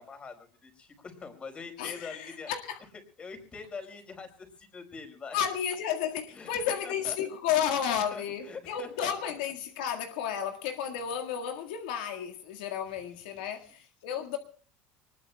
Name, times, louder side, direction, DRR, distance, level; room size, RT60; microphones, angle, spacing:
voice 1, 0.0-2.5 3.2-5.4 6.3-7.2 7.8-9.3, left 5 dB, 25° left, 4.9 m, -44 dB
voice 2, 1.8-2.8 5.3-14.4, left 8 dB, 90° left, 1.9 m, -32 dB
25.0 x 20.5 x 2.3 m
supercardioid pair, 125°, 4 cm